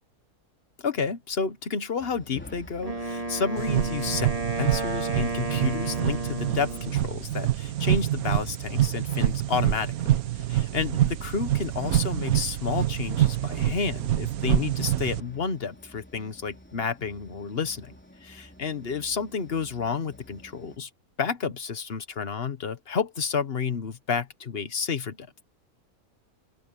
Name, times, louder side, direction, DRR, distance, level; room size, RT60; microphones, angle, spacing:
voice 1, 0.8-4.3 4.6-17.9 18.2-20.9 21.2-25.3, left 5 dB, 45° left, 1.3 m, -30 dB
sound 1, 2.0-20.8, left 1 dB, 5° left, 3.7 m, -51 dB
Wind instrument woodwind instrument, 2.8-7.0, right 2 dB, 25° right, 2.3 m, -32 dB
sound 2, 3.6-15.2, right 13 dB, 75° right, 1.3 m, -26 dB
omnidirectional pair, 1.5 m